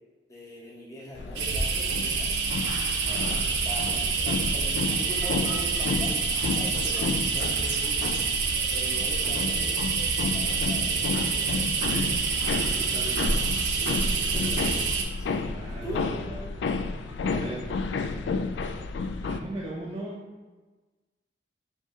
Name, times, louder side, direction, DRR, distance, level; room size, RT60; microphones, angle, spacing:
voice 1, 0.3-2.3 3.4-8.1 8.7-11.9 12.4-13.1 13.7-14.6 15.2-15.4 15.7-16.0, right 1 dB, 20° left, -5 dB, 0.9 m, -42 dB
sound 1, 1.1-19.4, left 4 dB, 85° left, 0.3 m, -32 dB
sound 2, 1.4-15.0, right 5 dB, 85° right, 0.6 m, -27 dB
voice 2, 3.0-3.5 11.7-12.1 12.5-13.5 14.2-14.8 15.5-18.1 19.2-20.2, right 1 dB, 25° right, -6 dB, 0.6 m, -39 dB
4.0 x 3.1 x 3.7 m, 1.3 s
head